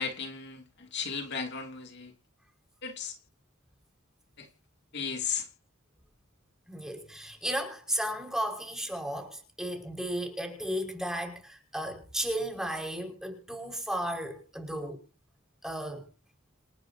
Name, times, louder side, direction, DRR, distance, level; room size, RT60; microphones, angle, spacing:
voice 1, 0.0-2.1 2.8-3.2 4.4-4.5 4.9-5.5, left 6 dB, 55° left, 2.9 m, -35 dB
voice 2, 6.7-15.0 15.6-16.1, equal, 5° right, 5.5 m, -34 dB
28.5 x 10.0 x 2.9 m
head